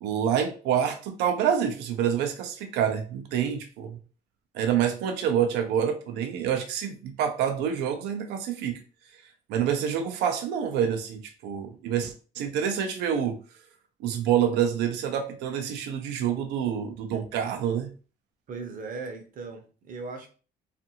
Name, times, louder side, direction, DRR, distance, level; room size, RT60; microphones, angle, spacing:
voice 1, 0.0-4.0 4.5-8.8 9.5-13.4 14.0-17.9, right 8 dB, 85° right, 6 dB, 0.5 m, -27 dB
voice 2, 18.5-20.3, right 4 dB, 55° right, 5 dB, 0.8 m, -38 dB
2.6 x 2.5 x 2.8 m, 0.37 s
cardioid pair, 110°, 17 cm